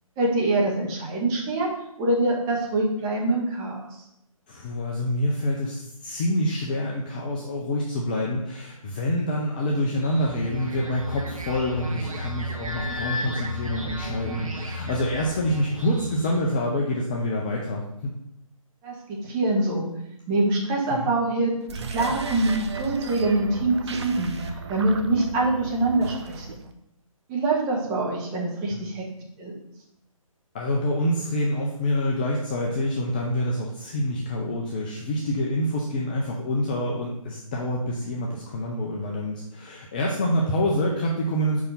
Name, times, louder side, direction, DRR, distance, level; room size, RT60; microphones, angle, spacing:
voice 1, 0.2-1.7 2.0-3.9 18.8-18.9 19.2-19.9 20.3-24.3 24.7-26.4 27.3-29.0 29.4-29.5, right 2 dB, 15° right, -2 dB, 1.2 m, -24 dB
voice 2, 4.5-18.1 20.9-21.1 28.7-28.8 30.5-41.6, left 1 dB, 15° left, -2 dB, 0.4 m, -26 dB
sound 1, 9.9-16.5, equal, 70° right, 1.3 m, -34 dB
sound 2, 21.6-26.7, right 4 dB, 50° right, 0.7 m, -35 dB
4.9 x 4.7 x 5.6 m, 0.80 s
figure-of-eight pair, 145°, 18 cm